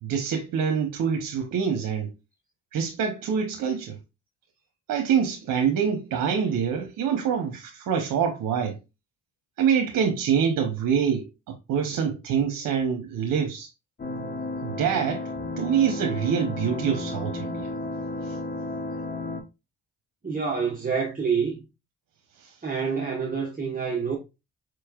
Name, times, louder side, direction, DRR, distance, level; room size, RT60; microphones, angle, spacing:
voice 1, 0.0-2.1 2.7-4.0 4.9-8.8 9.6-13.7 14.6-15.3 15.6-17.7 18.2-18.4 22.4-22.5, right 7 dB, 75° right, 0.8 m, -25 dB
sound 1, 14.0-19.4, left 2 dB, 30° left, 0.9 m, -33 dB
voice 2, 20.2-21.6 22.6-24.2, right 6 dB, 25° right, 1.1 m, -27 dB
4.8 x 3.1 x 2.3 m
cardioid pair, 75°, 33 cm